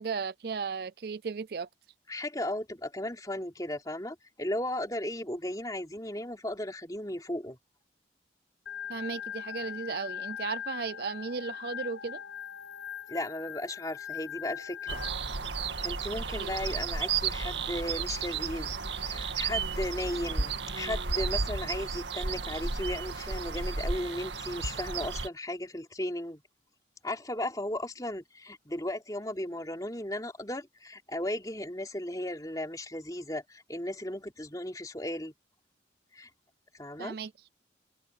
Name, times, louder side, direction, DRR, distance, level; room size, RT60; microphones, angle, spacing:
voice 1, 0.0-1.7 8.9-12.2 16.4-16.6 37.0-37.3, right 5 dB, 60° right, 0.4 m, -35 dB
voice 2, 2.1-7.6 13.1-15.0 15.8-18.7 19.0-26.4 27.0-35.3 36.1-36.3 36.7-37.2, left 1 dB, 20° left, 3.4 m, -36 dB
Organ, 8.7-15.1, left 9 dB, 80° left, 0.7 m, -40 dB
sound 1, 14.9-25.3, right 5 dB, 85° right, 1.9 m, -33 dB
head